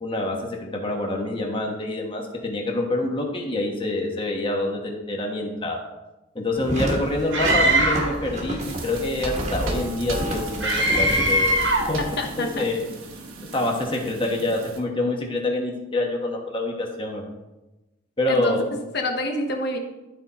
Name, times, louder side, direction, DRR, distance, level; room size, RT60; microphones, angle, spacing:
voice 1, 0.0-5.8 6.3-11.6 11.9-12.0 12.4-12.8 13.5-17.2 18.2-18.6, left 2 dB, 25° left, 1 dB, 1.2 m, -26 dB
sound 1, 6.5-12.3, right 1 dB, 35° right, 1.3 m, -31 dB
Screaming, 7.3-8.2 10.6-12.0, right 1 dB, 60° right, 1.4 m, -21 dB
sound 2, 8.6-14.8, right 2 dB, 90° right, 1.3 m, -36 dB
voice 2, 12.0-12.7 18.3-18.6 18.9-19.8, left 1 dB, 50° left, 4 dB, 1.1 m, -27 dB
12.5 x 4.2 x 4.2 m, 1.0 s
head